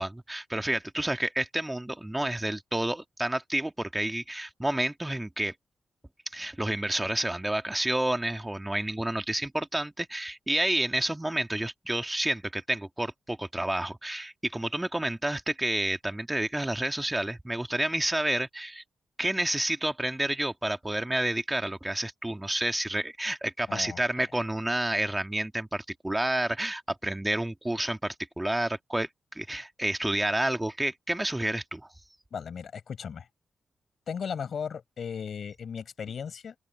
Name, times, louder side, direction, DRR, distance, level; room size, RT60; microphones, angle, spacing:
voice 1, 0.0-5.5 6.3-18.8 19.2-31.9, right 1 dB, 10° right, 1.9 m, -30 dB
voice 2, 23.7-24.2 32.3-33.3 34.1-36.6, left 7 dB, 65° left, 5.4 m, -36 dB
open air
cardioid pair, 65°, 0 cm